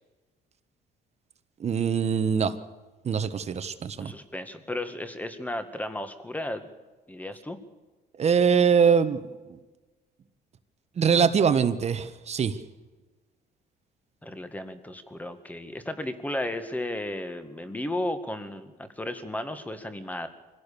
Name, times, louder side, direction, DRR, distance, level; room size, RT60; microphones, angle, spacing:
voice 1, 1.6-2.5 3.0-4.1 8.2-9.2 11.0-12.6, right 6 dB, 40° right, 11 dB, 1.4 m, -23 dB
voice 2, 3.9-6.7 7.1-7.6 14.2-20.3, left 1 dB, 10° left, 9 dB, 2.0 m, -34 dB
24.5 x 17.0 x 7.0 m, 1.2 s
cardioid pair, 110°, 17 cm